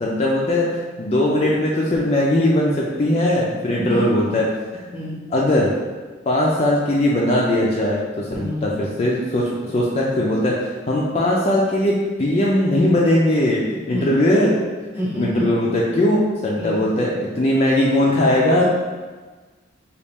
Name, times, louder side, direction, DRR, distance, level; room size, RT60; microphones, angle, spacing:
voice 1, 0.0-4.4 4.7-4.9 5.3-5.7 6.3-14.5 15.2-18.6, left 1 dB, 30° left, -4 dB, 0.4 m, -19 dB
voice 2, 4.9-5.3 8.4-8.7 13.9-14.1 15.0-15.5 16.6-16.9, equal, 10° right, -6 dB, 0.8 m, -28 dB
4.0 x 2.4 x 3.5 m, 1.3 s
head